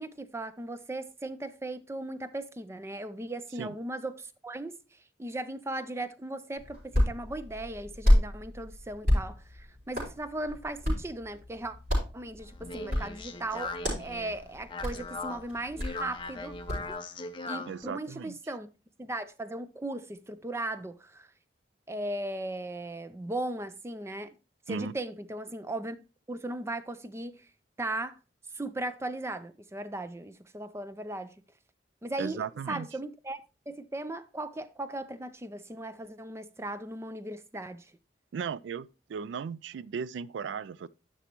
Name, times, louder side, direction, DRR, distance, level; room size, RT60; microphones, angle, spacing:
voice 1, 0.0-11.7 12.1-16.5 16.9-17.0 17.4-18.7 19.0-21.3 21.9-24.4 24.7-26.0 26.3-27.5 27.8-28.2 28.5-31.3 32.0-33.4 33.7-37.9, right 2 dB, 15° right, 0.4 m, -37 dB
Hands, 6.6-16.9, left 1 dB, 50° right, 5.2 m, -31 dB
Speech, 12.4-17.8, left 3 dB, 25° left, 0.6 m, -40 dB
voice 2, 17.7-18.4 24.7-24.9 32.2-32.9 38.3-40.9, right 6 dB, 85° right, 0.3 m, -36 dB
10.0 x 6.1 x 3.0 m
head